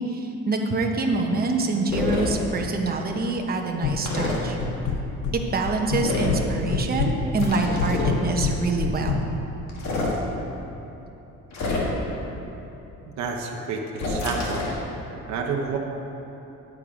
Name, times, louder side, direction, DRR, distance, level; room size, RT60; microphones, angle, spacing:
voice 1, 0.0-4.6 5.5-9.2, right 3 dB, 30° right, 2 dB, 1.0 m, -26 dB
sound 1, 1.9-2.3 4.1-4.4 6.0-6.4 7.4-8.2 9.7-10.2 11.5-12.1 14.0-14.8, left 3 dB, 60° left, 2.0 m, -27 dB
sound 2, 3.8-4.3 4.6-5.4 5.6-6.4 6.7-9.2, left 5 dB, 85° left, 1.0 m, -25 dB
voice 2, 13.1-14.7 15.3-15.8, right 4 dB, 65° right, 0 dB, 1.0 m, -29 dB
9.9 x 7.5 x 5.0 m, 3.0 s
cardioid pair, 135°, 30 cm